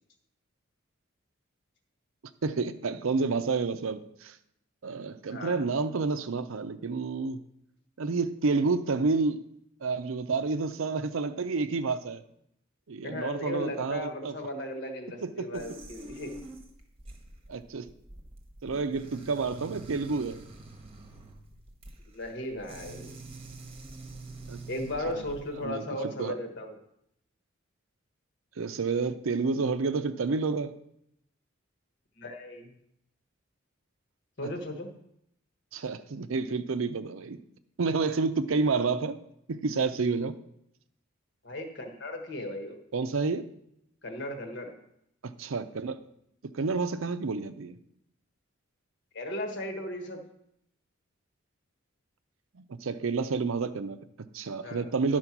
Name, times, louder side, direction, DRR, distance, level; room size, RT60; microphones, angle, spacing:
voice 1, 2.4-4.4 4.8-7.4 8.0-9.4 9.8-12.2 12.9-14.3 15.2-15.6 17.5-17.9 18.6-20.4 24.5-24.6 25.1-25.2 25.6-26.4 28.6-30.7 35.7-37.4 37.8-39.2 39.5-40.4 42.9-43.4 45.2-46.0 46.5-47.8 52.5-55.2, right 4 dB, 75° right, 11 dB, 0.5 m, -29 dB
voice 2, 5.3-5.6 13.0-16.3 18.7-18.9 22.1-23.1 24.7-26.8 32.2-32.7 34.4-34.9 41.4-42.8 44.0-44.7 49.1-50.2 54.6-55.2, left 1 dB, 55° left, 4 dB, 1.3 m, -36 dB
sound 1, 15.5-25.6, right 2 dB, 30° right, 1.0 m, -46 dB
11.5 x 4.4 x 6.0 m, 0.76 s
head